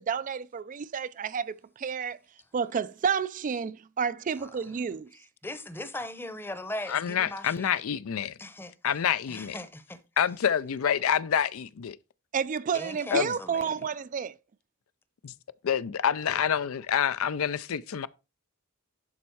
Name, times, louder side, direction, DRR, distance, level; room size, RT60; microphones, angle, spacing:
voice 1, 0.0-2.2 2.5-5.1 12.3-14.3, right 6 dB, 35° right, 0.3 m, -30 dB
voice 2, 5.1-7.8 8.4-10.0 12.7-13.8, left 1 dB, 10° left, 0.8 m, -40 dB
voice 3, 6.9-8.3 8.8-9.5 10.2-12.0 13.1-13.3 15.2-15.3 15.6-18.1, left 8 dB, 70° left, 0.4 m, -27 dB
11.5 x 4.3 x 4.6 m
head